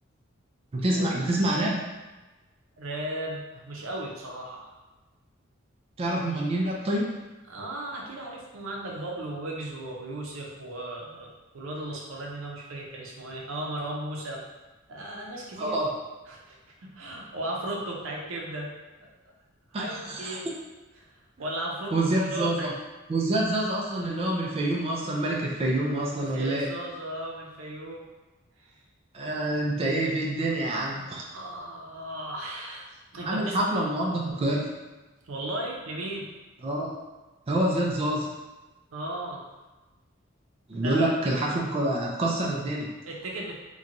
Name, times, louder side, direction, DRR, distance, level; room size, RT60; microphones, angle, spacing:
voice 1, 0.7-1.8 6.0-7.1 15.6-15.9 19.7-20.4 21.9-22.7 23.1-26.7 29.1-31.2 33.2-34.7 36.6-36.9 37.5-38.3 40.7-42.9, right 1 dB, 30° right, -2 dB, 0.3 m, -27 dB
voice 2, 2.8-4.7 7.5-14.4 14.9-15.8 16.3-18.7 19.1-19.2 19.7-20.4 21.0-21.1 21.4-22.7 26.2-28.0 28.6-28.7 31.3-32.9 33.1-33.6 35.2-36.3 38.9-39.4 40.7-41.1 43.1-43.6, right 1 dB, 85° right, -2 dB, 0.6 m, -36 dB
2.9 x 2.2 x 2.5 m, 1.2 s
head